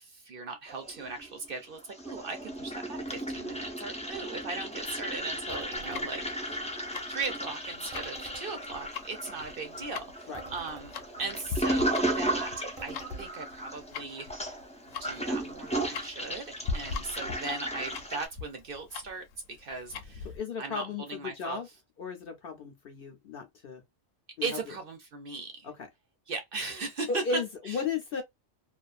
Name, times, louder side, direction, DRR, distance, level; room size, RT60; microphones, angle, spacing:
voice 1, 0.0-6.7 7.1-10.9 11.2-12.5 12.8-14.3 15.0-16.4 16.7-19.2 19.6-20.3 20.6-21.6 24.4-25.7 26.3-27.4 27.7-27.8, right 4 dB, 55° right, 0.7 m, -38 dB
Toilet flush, 0.7-1.5 1.8-18.3, right 1 dB, 10° left, 0.3 m, -35 dB
sound 1, 5.5-6.0 7.9-8.5 10.3-10.9 12.8-13.3, right 4 dB, 30° right, 0.9 m, -46 dB
Tick-tock, 5.8-20.4, left 5 dB, 90° left, 1.0 m, -41 dB
voice 2, 20.2-21.7 22.0-23.8 24.4-24.6 25.6-25.7 27.1-28.2, left 5 dB, 60° left, 0.6 m, -35 dB
2.4 x 2.3 x 2.3 m
omnidirectional pair, 1.3 m